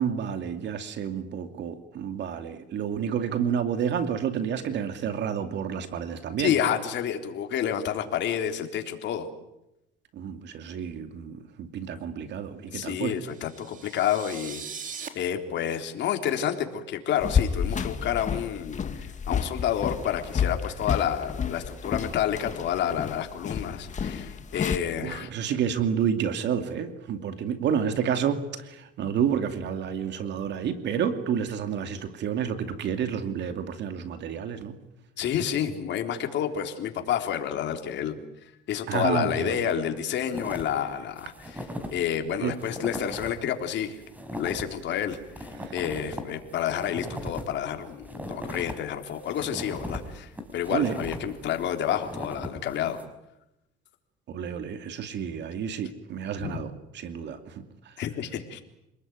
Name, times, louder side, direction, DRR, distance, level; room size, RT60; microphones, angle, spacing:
voice 1, 0.0-6.5 10.1-13.2 25.0-34.8 38.9-39.6 42.4-42.6 45.6-45.7 50.7-51.0 54.3-57.9, right 8 dB, 60° right, 8 dB, 2.5 m, -30 dB
voice 2, 6.4-9.3 12.7-14.6 15.1-25.3 35.2-38.2 38.7-44.0 44.4-53.0 56.4-56.5 58.0-58.6, left 9 dB, 65° left, 5 dB, 3.7 m, -29 dB
sound 1, 13.2-15.1, right 6 dB, 40° right, 3.5 m, -40 dB
sound 2, 17.2-24.8, left 6 dB, 35° left, 2.2 m, -30 dB
sound 3, 40.3-40.8 41.2-42.0 42.3-42.4 42.6-43.4 43.8-48.7 49.1-53.0, equal, 10° right, 5.7 m, -38 dB
28.0 x 20.0 x 9.5 m, 0.89 s
cardioid pair, 105°, 20 cm